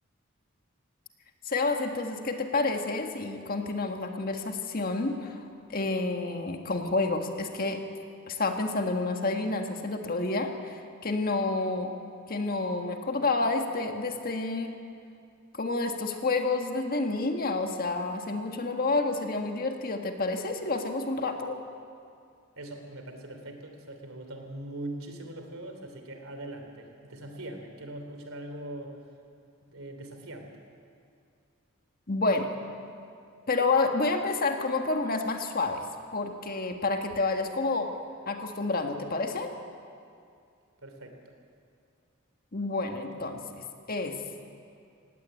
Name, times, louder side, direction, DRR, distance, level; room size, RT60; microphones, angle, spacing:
voice 1, 1.5-5.4 5.7-7.8 8.3-11.9 12.3-14.7 15.5-21.6 32.1-32.5 33.5-35.8 36.1-37.9 38.3-39.5 42.5-44.2, left 3 dB, 45° left, 4 dB, 1.6 m, -29 dB
voice 2, 22.6-28.9 29.6-30.5 40.8-41.4, right 1 dB, 80° right, 5 dB, 3.0 m, -41 dB
18.0 x 16.0 x 9.1 m, 2.4 s
head